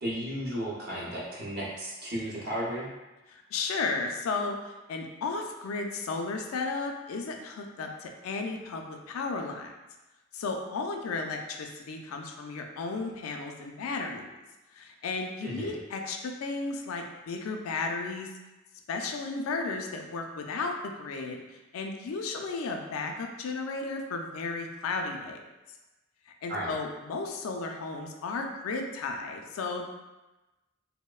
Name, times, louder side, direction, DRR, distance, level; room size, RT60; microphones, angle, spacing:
voice 1, 0.0-2.9 15.4-15.7 26.5-26.7, equal, 50° right, -5 dB, 0.6 m, -34 dB
voice 2, 3.3-4.6 4.9-9.7 10.3-14.3 14.7-18.3 18.9-21.4 21.7-25.4 26.4-29.9, left 3 dB, 85° left, 3 dB, 0.3 m, -34 dB
2.9 x 2.0 x 2.2 m, 1.1 s
head